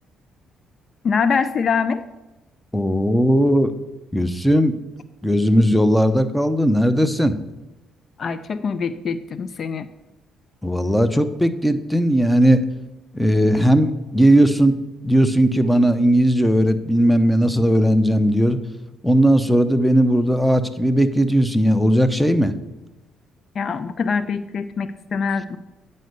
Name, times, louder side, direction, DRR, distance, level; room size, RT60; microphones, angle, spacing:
voice 1, 1.0-2.0 8.2-9.9 23.5-25.6, left 5 dB, 55° left, 14 dB, 0.5 m, -24 dB
voice 2, 2.7-3.7 4.1-4.8 5.2-7.4 10.6-12.6 13.1-14.8 15.0-18.6 19.0-22.5, equal, 5° left, 11 dB, 0.8 m, -17 dB
9.2 x 5.4 x 6.7 m, 1.0 s
supercardioid pair, 65°, 0 cm